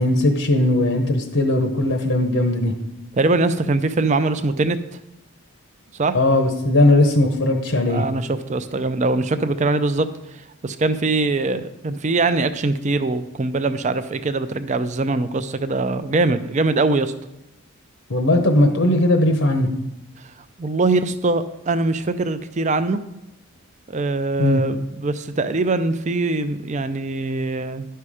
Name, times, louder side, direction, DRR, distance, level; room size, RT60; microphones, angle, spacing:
voice 1, 0.0-2.7 6.1-8.0 18.1-19.7 24.4-24.6, left 1 dB, 65° left, 5 dB, 0.9 m, -18 dB
voice 2, 3.2-4.8 5.9-6.2 7.8-17.1 20.6-23.0 23.9-27.9, right 3 dB, 35° right, 11 dB, 0.4 m, -22 dB
11.0 x 5.6 x 4.9 m, 0.88 s
head